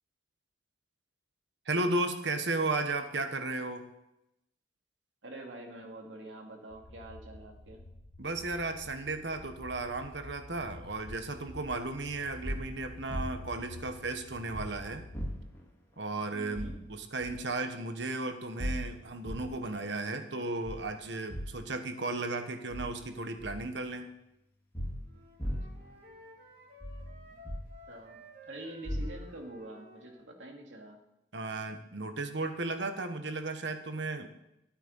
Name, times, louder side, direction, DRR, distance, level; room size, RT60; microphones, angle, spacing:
voice 1, 1.7-3.8 8.2-15.1 16.0-24.1 31.3-34.3, right 2 dB, 70° right, 7 dB, 1.3 m, -35 dB
voice 2, 5.2-7.8 16.3-16.8 27.9-31.0, right 1 dB, 90° right, 1 dB, 2.6 m, -46 dB
sound 1, 6.7-15.3, left 1 dB, 85° left, 1.3 m, -50 dB
sound 2, 11.1-11.2 12.4-13.5 14.5-14.7 15.1-15.6 16.5-16.8 17.2-17.4 18.6-19.5 20.6-20.9 21.3-21.6 22.7-23.0 23.4-23.7 24.7-25.9 26.8-27.7 28.8-29.3, equal, 15° left, 2.3 m, -37 dB
Wind instrument woodwind instrument, 25.0-30.3, left 1 dB, 50° right, 2.9 m, -54 dB
13.5 x 8.9 x 5.5 m, 0.86 s
head